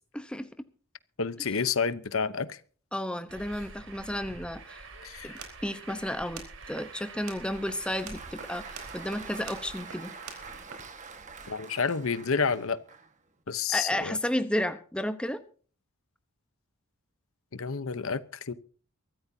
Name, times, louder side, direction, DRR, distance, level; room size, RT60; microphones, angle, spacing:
voice 1, 0.1-0.5 2.9-4.9 5.2-5.3 5.6-10.1 13.7-15.4, left 1 dB, 5° left, 0.9 m, -32 dB
voice 2, 1.2-2.6 5.0-5.4 11.5-12.8 13.5-14.2 17.5-18.5, left 5 dB, 65° left, 0.9 m, -30 dB
Truck, 3.3-10.6, right 3 dB, 60° right, 2.7 m, -47 dB
sound 1, 5.2-11.5, right 4 dB, 75° right, 4.4 m, -49 dB
Applause, 7.0-13.2, right 5 dB, 35° right, 1.5 m, -47 dB
23.5 x 13.5 x 2.8 m
head